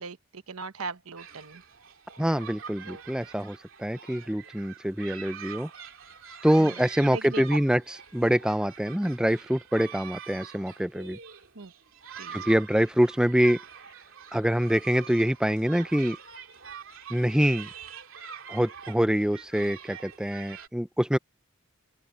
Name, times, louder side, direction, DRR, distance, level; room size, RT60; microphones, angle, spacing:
voice 1, 0.0-1.6 2.8-3.0 6.6-7.6 11.5-11.7 12.2-12.4, right 4 dB, 75° right, 1.1 m, -39 dB
sound 1, 1.2-20.7, right 7 dB, 60° right, 2.9 m, -45 dB
voice 2, 2.2-5.7 6.4-11.2 12.3-13.6 14.3-16.2 17.1-17.7 18.5-21.2, equal, 5° right, 0.4 m, -25 dB
open air
head